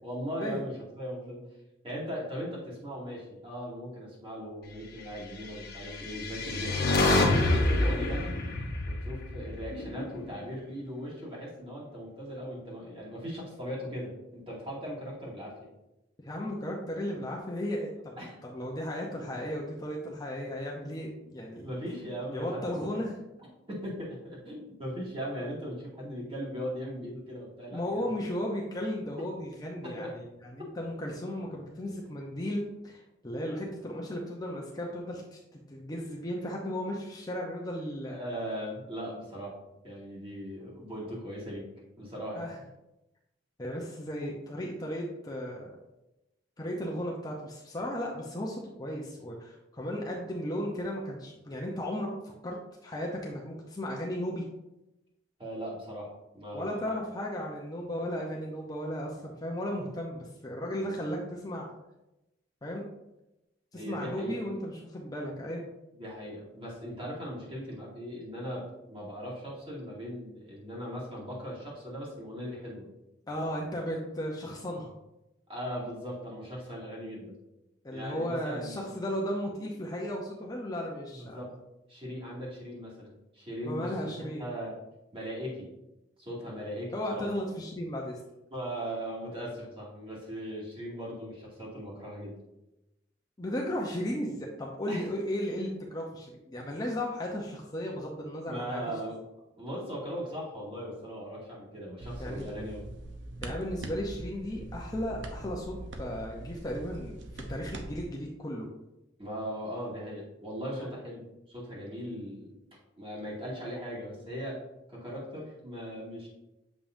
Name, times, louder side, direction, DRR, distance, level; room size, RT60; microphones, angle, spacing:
voice 1, 0.0-1.4 1.8-8.4 8.9-15.6 18.2-18.3 21.6-23.0 23.7-28.1 29.8-30.1 30.6-30.7 38.1-39.6 39.8-41.7 42.0-42.5 55.4-57.0 60.8-60.9 63.7-64.4 65.9-72.9 75.5-77.4 77.9-78.9 81.1-81.5 81.9-84.8 85.1-85.7 86.2-87.3 88.5-92.4 94.9-95.0 98.5-99.2 99.6-102.8 109.2-112.6 113.0-114.6 114.9-116.3, equal, 30° right, -6 dB, 2.3 m, -39 dB
sound 1, 5.9-10.2, left 2 dB, 55° left, 1.0 m, -27 dB
voice 2, 16.2-18.2 18.4-21.7 22.3-23.2 27.7-35.4 35.7-38.2 42.3-42.6 43.6-45.8 46.6-52.1 52.4-52.6 52.8-54.4 56.5-61.7 62.6-62.8 63.7-65.7 73.3-74.9 77.8-81.5 83.6-84.4 86.9-88.2 93.4-98.8 102.2-102.5 103.4-108.7 110.7-110.9, equal, 20° left, -2 dB, 0.7 m, -35 dB
sound 2, 102.0-108.0, right 1 dB, 80° right, 0.7 m, -42 dB
7.2 x 5.3 x 2.6 m, 0.93 s
head